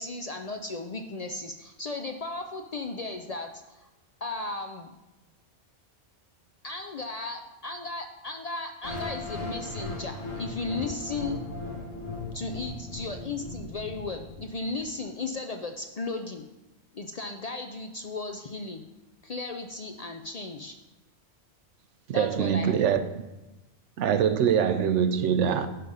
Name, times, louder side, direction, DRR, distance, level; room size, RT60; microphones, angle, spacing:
voice 1, 0.0-3.9 4.2-4.9 6.6-11.4 12.3-16.4 16.9-18.8 19.2-20.8 22.1-22.8, left 3 dB, 50° left, 0.5 m, -35 dB
sound 1, 8.8-14.8, left 2 dB, 75° left, 2.5 m, -37 dB
voice 2, 22.1-23.0 24.0-25.7, right 8 dB, 90° right, 1.0 m, -23 dB
11.0 x 3.7 x 5.4 m
omnidirectional pair, 1.2 m